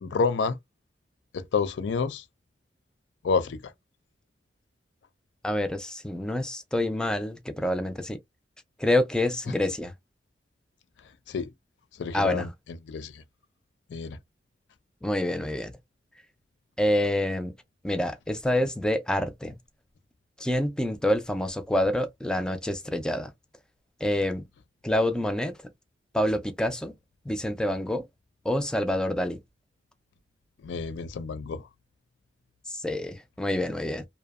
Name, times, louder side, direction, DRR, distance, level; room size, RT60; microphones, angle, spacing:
voice 1, 0.0-0.6 1.3-2.2 3.2-3.7 11.3-11.5 12.0-12.5 12.9-13.2 13.9-14.2 30.6-31.7, left 5 dB, 90° left, 0.4 m, -28 dB
voice 2, 5.4-8.2 8.8-9.9 12.1-12.5 15.0-15.7 16.8-17.5 17.8-19.6 20.4-23.3 24.0-24.5 24.8-25.6 26.1-26.9 27.3-28.1 28.4-29.4 32.7-34.1, left 1 dB, 5° left, 0.3 m, -27 dB
2.6 x 2.1 x 2.3 m
head